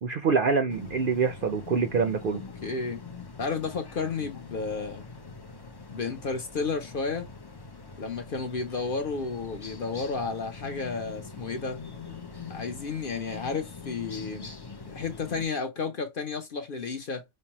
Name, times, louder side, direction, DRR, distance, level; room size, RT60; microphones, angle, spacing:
voice 1, 0.0-2.4, right 5 dB, 55° right, 0.6 m, -25 dB
sound 1, 0.7-15.5, left 4 dB, 35° left, 0.4 m, -43 dB
voice 2, 2.6-3.0 3.4-5.0 5.9-7.3 8.0-11.8 12.5-14.5 14.9-17.2, left 4 dB, 50° left, 0.8 m, -32 dB
5.3 x 2.1 x 2.9 m
omnidirectional pair, 1.4 m